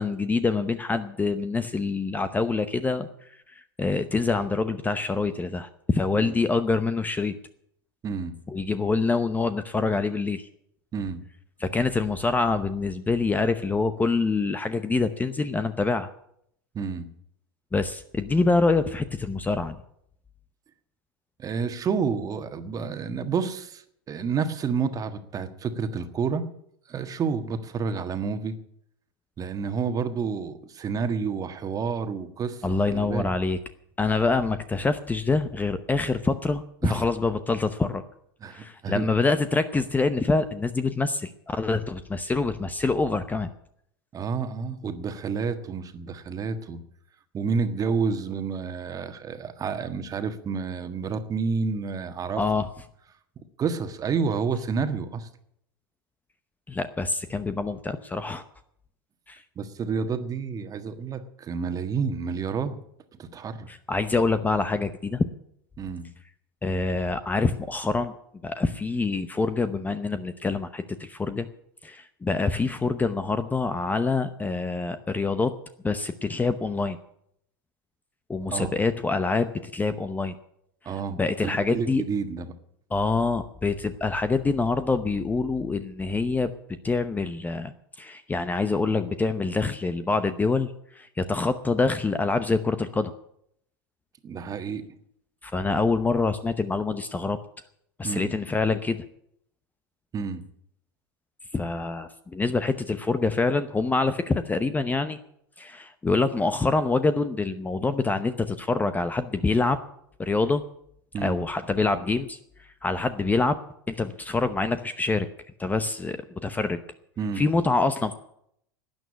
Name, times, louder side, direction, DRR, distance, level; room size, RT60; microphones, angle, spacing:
voice 1, 0.0-3.1 3.5-7.4 8.5-10.5 11.6-16.1 17.7-19.8 32.6-33.6 34.0-38.0 38.5-43.5 52.4-52.7 56.7-58.4 59.3-59.4 63.7-65.2 66.6-68.1 68.4-71.5 71.8-75.5 75.8-77.0 78.3-80.3 80.8-82.0 82.9-86.5 86.8-93.1 95.4-97.4 98.0-99.0 101.5-105.2 105.6-109.8 110.2-110.6 111.2-113.6 113.9-115.3 115.6-116.8 117.4-118.1, left 3 dB, 15° left, 11 dB, 0.8 m, -26 dB
voice 2, 8.0-8.3 10.9-11.2 16.7-17.1 21.4-26.5 26.9-28.6 29.4-33.3 36.8-37.0 38.4-39.1 44.1-46.8 47.3-52.4 53.6-55.3 59.5-62.8 63.2-63.7 65.8-66.1 78.5-78.7 80.8-82.5 94.2-94.8 98.0-98.3 100.1-100.4 111.1-111.4 117.2-117.4, right 5 dB, 30° right, 8 dB, 1.6 m, -29 dB
12.5 x 9.3 x 9.6 m, 0.71 s
hypercardioid pair, 105°, 12 cm